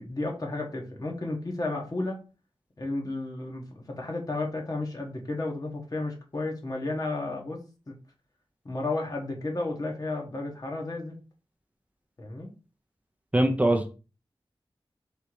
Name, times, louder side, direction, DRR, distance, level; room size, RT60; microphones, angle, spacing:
voice 1, 0.0-2.2 2.8-7.6 7.9-8.0 8.6-11.2 12.2-12.5, left 2 dB, 40° left, 0 dB, 1.3 m, -32 dB
voice 2, 13.3-13.9, right 1 dB, 15° right, 3 dB, 0.5 m, -22 dB
3.4 x 2.8 x 4.5 m, 0.33 s
wide cardioid pair, 75°, 9 cm